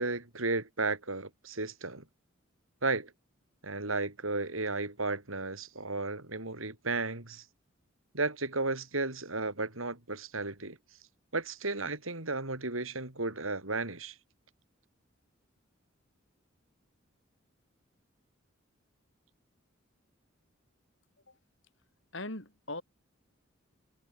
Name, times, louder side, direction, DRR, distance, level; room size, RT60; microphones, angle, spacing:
voice 1, 0.0-2.0 2.8-3.1 3.6-7.4 8.1-10.8 11.3-14.1, right 3 dB, 85° right, 4.6 m, -34 dB
voice 2, 22.1-22.8, left 2 dB, 65° left, 7.2 m, -39 dB
head